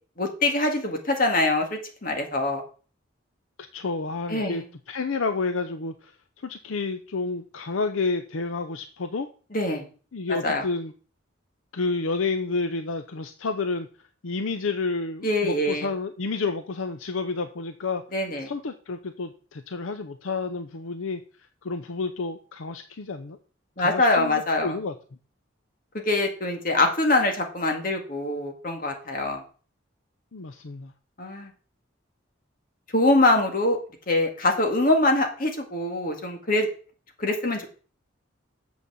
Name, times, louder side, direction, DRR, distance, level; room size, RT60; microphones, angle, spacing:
voice 1, 0.2-2.6 4.3-4.6 9.5-9.8 10.4-10.6 15.2-15.9 18.1-18.5 23.8-24.8 25.9-29.4 31.2-31.5 32.9-33.8 34.1-36.7 37.2-37.7, left 2 dB, 45° left, 3 dB, 2.0 m, -24 dB
voice 2, 3.7-6.1 6.4-9.3 10.1-10.9 11.7-13.9 14.2-18.0 18.4-21.2 21.6-23.4 23.8-24.9 30.3-30.9, left 3 dB, 85° left, 9 dB, 0.7 m, -30 dB
7.1 x 6.2 x 7.0 m, 0.39 s
head